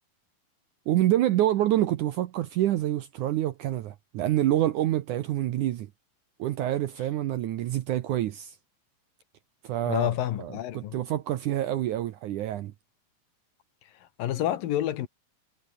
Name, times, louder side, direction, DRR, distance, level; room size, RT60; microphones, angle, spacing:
voice 1, 0.9-5.9 6.4-8.6 9.6-10.1 10.4-12.7, right 13 dB, 70° right, 2.0 m, -27 dB
voice 2, 9.9-11.0 14.2-15.1, left 12 dB, 70° left, 2.8 m, -28 dB
omnidirectional pair, 4.5 m